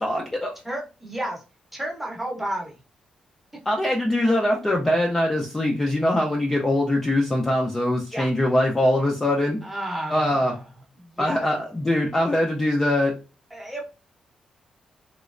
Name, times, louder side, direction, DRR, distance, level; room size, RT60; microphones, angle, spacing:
voice 1, 0.0-0.5 3.7-9.6 10.1-10.5 11.2-13.1, left 1 dB, 10° left, 0 dB, 0.4 m, -22 dB
voice 2, 0.6-1.4 1.7-2.8 8.1-8.3 9.6-10.6 11.0-11.5 13.5-13.8, right 1 dB, 5° right, -1 dB, 0.8 m, -32 dB
3.1 x 2.9 x 2.4 m, 0.33 s
wide cardioid pair, 155°, 3 cm